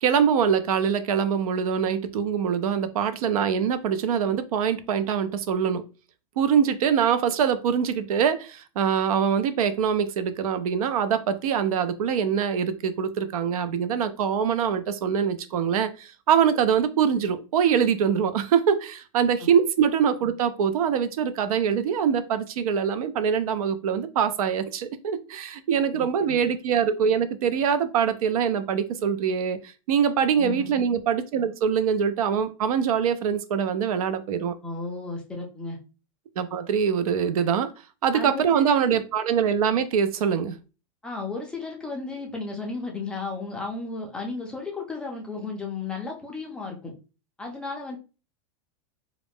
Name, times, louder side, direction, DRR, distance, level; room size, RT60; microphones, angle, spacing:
voice 1, 0.0-5.8 6.4-29.6 29.9-34.5 36.4-37.7 38.0-40.5, right 7 dB, 85° right, 0.4 m, -24 dB
voice 2, 25.9-26.4 30.4-30.7 34.6-35.8 38.1-39.0 41.0-46.9 47.4-48.0, left 3 dB, 5° left, 0.3 m, -34 dB
2.4 x 2.0 x 3.4 m
supercardioid pair, 155°, 18 cm